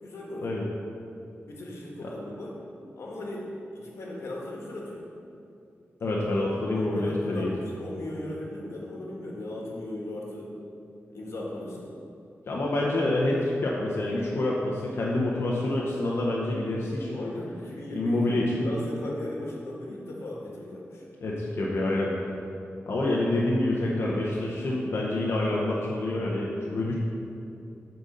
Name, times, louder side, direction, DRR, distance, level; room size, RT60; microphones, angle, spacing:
voice 1, 0.0-0.5 1.5-2.5 3.0-5.1 6.7-10.5 11.1-11.8 17.1-21.0, left 1 dB, 90° left, -3 dB, 1.5 m, -37 dB
voice 2, 6.0-7.5 12.5-17.2 17.9-18.7 21.2-22.1 22.9-26.9, left 1 dB, 65° left, -4 dB, 0.9 m, -27 dB
8.8 x 4.0 x 6.6 m, 2.7 s
wide cardioid pair, 150°, 5 cm